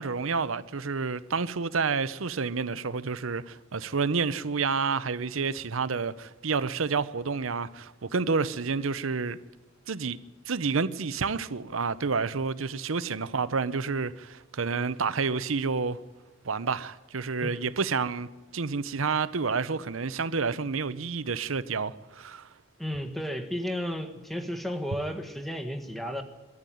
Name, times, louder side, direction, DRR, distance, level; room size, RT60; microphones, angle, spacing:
voice 1, 0.0-9.4 9.9-10.2 10.5-16.0 16.4-18.3 18.5-22.5, right 5 dB, 80° right, 0.8 m, -29 dB
voice 2, 22.8-26.2, equal, ahead, 1.6 m, -33 dB
22.5 x 13.5 x 9.2 m
head